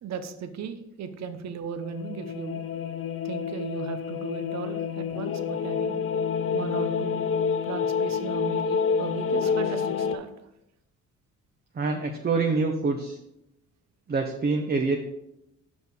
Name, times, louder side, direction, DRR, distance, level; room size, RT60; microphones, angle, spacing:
voice 1, 0.0-2.6 3.2-6.0 6.5-7.2 7.6-10.3, right 6 dB, 60° right, 9 dB, 0.9 m, -36 dB
sound 1, 1.8-10.2, left 6 dB, 45° left, 0.5 m, -28 dB
voice 2, 11.7-13.2 14.1-15.0, right 4 dB, 30° right, 3 dB, 0.8 m, -26 dB
6.4 x 5.2 x 5.2 m, 0.85 s
cardioid pair, 90°, 30 cm